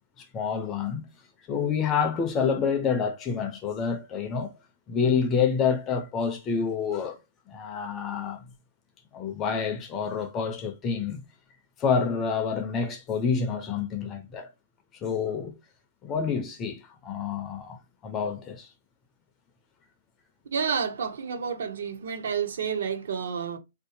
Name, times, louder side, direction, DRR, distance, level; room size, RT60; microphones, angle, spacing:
voice 1, 0.2-1.1 1.5-4.5 4.9-7.2 7.5-8.4 9.1-11.2 11.8-14.5 15.0-15.6 16.0-17.8 18.0-18.7, left 6 dB, 15° left, 0.4 m, -28 dB
voice 2, 20.5-23.6, right 6 dB, 60° right, 0.7 m, -30 dB
4.2 x 2.6 x 2.6 m
hypercardioid pair, 170°, 0 cm